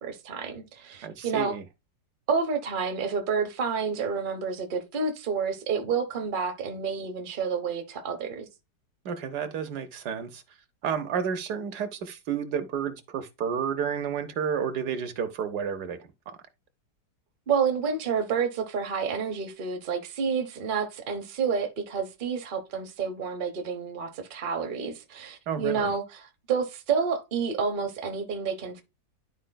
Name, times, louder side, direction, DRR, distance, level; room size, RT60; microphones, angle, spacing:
voice 1, 0.0-1.6 2.3-8.5 17.5-28.8, right 5 dB, 40° right, 0.8 m, -29 dB
voice 2, 1.0-1.6 9.0-10.4 10.8-16.0 16.3-16.4 25.5-25.9, right 7 dB, 70° right, 1.4 m, -31 dB
11.5 x 4.3 x 2.2 m
omnidirectional pair, 1.8 m